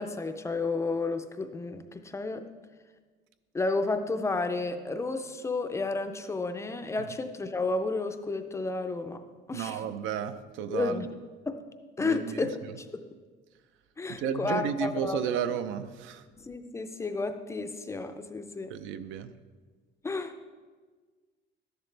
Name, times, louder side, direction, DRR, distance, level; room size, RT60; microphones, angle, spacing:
voice 1, 0.0-2.5 3.5-9.2 9.5-9.8 10.7-11.1 11.5-11.6 12.0-12.5 12.9-13.0 14.0-15.4 16.4-18.7 20.0-20.3, left 3 dB, 15° left, 8 dB, 0.4 m, -31 dB
voice 2, 9.5-11.0 12.0-12.5 14.1-16.2 18.7-19.3, right 8 dB, 85° right, 11 dB, 0.6 m, -33 dB
13.0 x 11.0 x 3.3 m, 1.5 s
cardioid pair, 180°, 20 cm